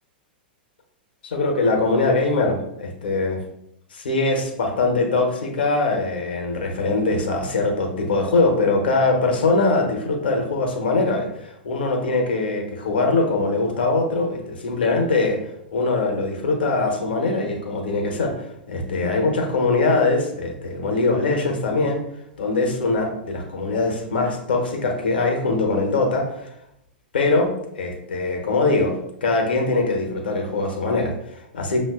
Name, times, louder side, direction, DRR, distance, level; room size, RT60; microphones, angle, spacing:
voice 1, 1.2-3.4 3.9-15.4 15.7-22.0 22.4-26.5 27.1-31.8, left 3 dB, 70° left, 2 dB, 0.9 m, -22 dB
5.8 x 2.5 x 2.3 m, 0.79 s
figure-of-eight pair, 100°, 5 cm